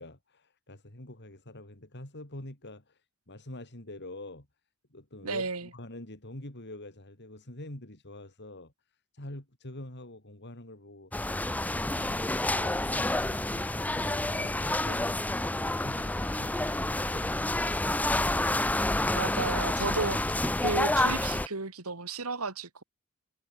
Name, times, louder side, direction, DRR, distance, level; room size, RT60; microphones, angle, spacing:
voice 1, 0.0-4.5 4.9-18.3, left 1 dB, 50° left, 4.3 m, -46 dB
voice 2, 5.2-5.7 19.1-20.2 20.6-22.8, right 3 dB, 75° right, 2.5 m, -33 dB
sound 1, 11.1-21.5, left 1 dB, 5° left, 0.5 m, -29 dB
head